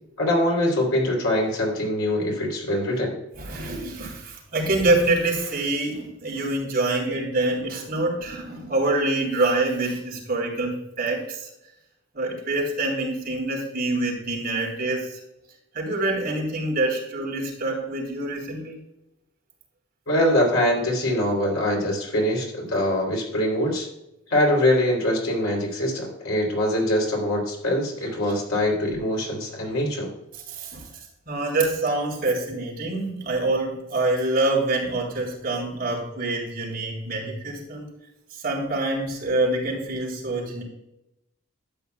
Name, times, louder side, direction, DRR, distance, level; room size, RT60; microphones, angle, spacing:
voice 1, 0.2-3.1 20.1-23.9 24.3-30.1, left 1 dB, 75° left, 0 dB, 3.3 m, -23 dB
voice 2, 3.4-11.5 12.1-15.2 15.7-18.8 30.5-30.9 31.3-37.9 38.4-40.6, right 2 dB, 45° right, -3 dB, 3.5 m, -26 dB
12.0 x 8.9 x 2.3 m, 0.86 s
head